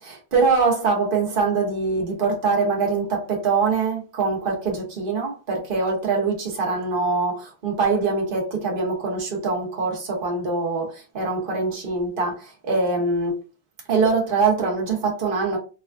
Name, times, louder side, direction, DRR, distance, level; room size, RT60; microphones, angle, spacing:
voice 1, 0.0-13.4 13.9-15.6, right 4 dB, 55° right, 1.2 m, -23 dB
3.6 x 2.3 x 2.4 m
omnidirectional pair, 1.1 m